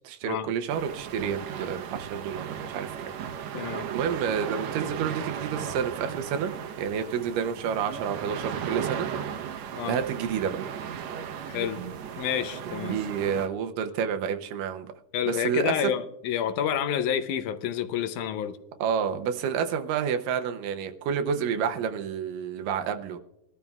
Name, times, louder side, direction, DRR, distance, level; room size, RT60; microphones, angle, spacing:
voice 1, 0.0-3.1 3.4-9.6 9.8-10.6 12.9-14.9 15.3-15.8 18.8-23.2, right 7 dB, 85° right, 2.4 m, -30 dB
sound 1, 0.7-13.5, right 8 dB, 70° right, 1.9 m, -36 dB
voice 2, 3.5-3.9 9.8-10.0 11.5-11.8 12.2-13.0 15.1-18.6, left 9 dB, 80° left, 2.1 m, -29 dB
21.0 x 12.5 x 2.3 m
omnidirectional pair, 3.7 m